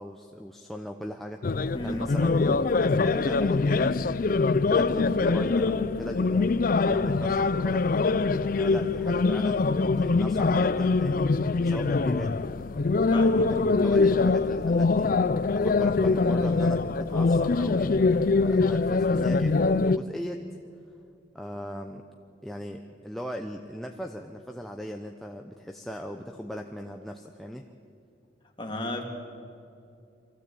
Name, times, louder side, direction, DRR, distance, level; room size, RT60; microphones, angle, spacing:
voice 1, 0.0-7.9 8.6-9.7 10.0-11.3 11.6-12.4 13.1-15.2 15.6-18.0 18.4-20.5 21.3-22.1 22.4-27.7, equal, ahead, 3 dB, 0.6 m, -38 dB
sound 1, 1.4-20.0, left 3 dB, 45° left, 0.4 m, -23 dB
voice 2, 1.7-2.1 13.1-13.8 28.6-29.0, left 1 dB, 25° left, 1 dB, 2.3 m, -34 dB
24.0 x 15.5 x 8.4 m, 2.5 s
head